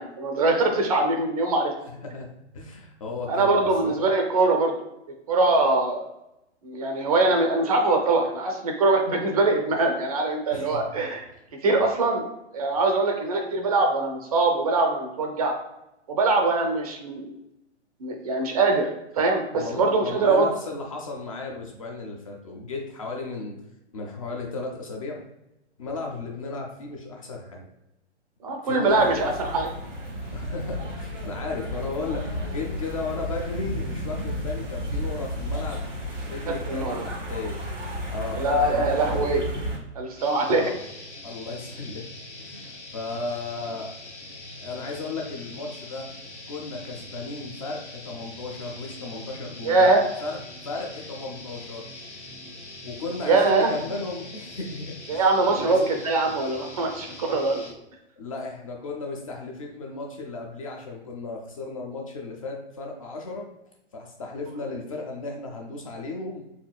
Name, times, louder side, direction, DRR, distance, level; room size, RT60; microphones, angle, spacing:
voice 1, 0.0-1.7 3.3-4.7 5.3-6.1 6.6-11.3 11.6-12.2 12.5-15.6 16.1-17.3 18.0-20.5 28.4-29.7 36.5-37.0 38.3-39.4 39.9-40.6 49.6-50.0 53.2-53.7 55.1-57.7, right 3 dB, 35° right, 3 dB, 0.5 m, -22 dB
voice 2, 2.5-3.9 10.5-10.8 19.6-23.6 23.9-25.2 25.8-27.7 28.6-29.2 30.3-35.9 36.2-37.6 38.1-39.3 40.5-40.8 41.2-42.1 42.4-43.9 44.6-46.1 46.5-49.9 50.2-50.4 50.6-51.9 52.8-55.9 58.2-63.5 63.9-66.4, left 3 dB, 30° left, 0 dB, 0.4 m, -34 dB
sound 1, 28.9-39.8, equal, 85° right, 1.4 m, -32 dB
sound 2, 40.2-57.7, left 2 dB, 75° left, 0.9 m, -42 dB
4.3 x 2.7 x 2.2 m, 0.88 s
figure-of-eight pair, 120°, 35 cm